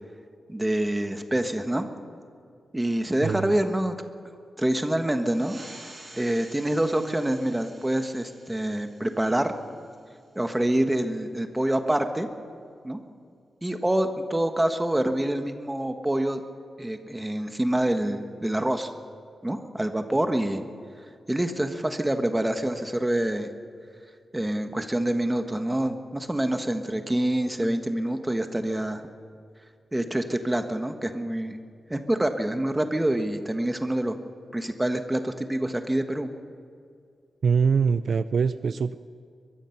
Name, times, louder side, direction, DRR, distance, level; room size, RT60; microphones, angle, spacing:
voice 1, 0.5-1.9 2.7-3.9 4.6-5.6 6.2-9.5 10.3-12.3 12.8-13.0 13.6-16.4 16.8-18.9 19.4-20.7 21.3-23.5 24.3-29.0 29.9-31.6 31.9-34.2 34.5-36.3, right 1 dB, 10° right, 7 dB, 1.3 m, -26 dB
sound 1, 5.2-10.3, right 2 dB, 30° right, 7.3 m, -49 dB
voice 2, 37.4-38.9, right 5 dB, 60° right, 13 dB, 0.5 m, -23 dB
23.0 x 21.0 x 5.8 m, 2.3 s
wide cardioid pair, 155°, 0 cm